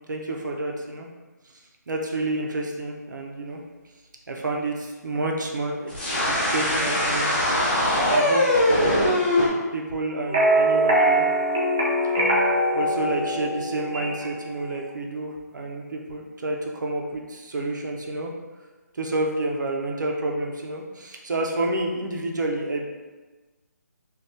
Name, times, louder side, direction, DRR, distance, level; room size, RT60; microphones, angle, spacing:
voice 1, 0.1-1.1 1.9-3.6 4.3-7.3 7.9-9.0 9.7-11.3 12.7-18.3 18.9-22.8, right 2 dB, 80° right, 0 dB, 0.6 m, -29 dB
sound 1, 5.9-9.5, left 1 dB, 30° left, 0.6 m, -21 dB
sound 2, 10.3-14.3, right 1 dB, 20° right, 0.3 m, -22 dB
3.4 x 2.3 x 2.6 m, 1.3 s
hypercardioid pair, 175°, 10 cm